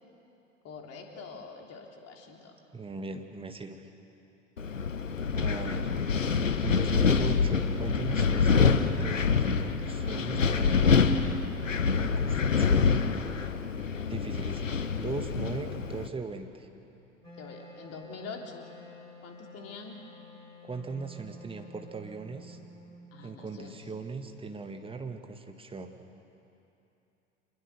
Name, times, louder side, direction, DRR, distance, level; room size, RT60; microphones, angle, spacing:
voice 1, 0.6-2.5 17.4-18.7 19.2-20.0 23.1-23.8, left 4 dB, 40° left, 1 dB, 3.5 m, -44 dB
voice 2, 2.7-3.9 5.3-5.9 6.2-11.0 12.0-12.9 14.1-16.7 20.6-22.6 23.2-25.9, right 4 dB, 15° right, 6 dB, 1.8 m, -39 dB
Wind, 4.6-16.1, left 5 dB, 85° left, 0.9 m, -26 dB
Wind instrument woodwind instrument, 17.2-24.2, left 1 dB, 90° right, 7.8 m, -51 dB
26.0 x 21.0 x 6.8 m, 2.9 s
figure-of-eight pair, 75°, 38 cm